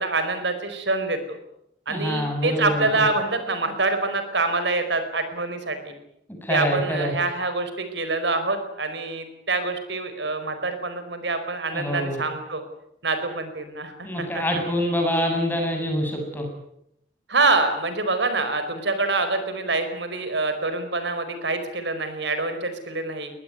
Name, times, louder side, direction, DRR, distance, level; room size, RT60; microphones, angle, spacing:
voice 1, 0.0-1.4 1.9-5.9 6.5-12.6 13.0-14.4 17.3-23.3, right 3 dB, 90° right, 9 dB, 4.7 m, -26 dB
voice 2, 1.9-3.0 6.4-7.1 11.7-12.2 14.0-16.5, equal, 10° left, 3 dB, 6.9 m, -25 dB
23.0 x 19.5 x 9.5 m, 0.76 s
head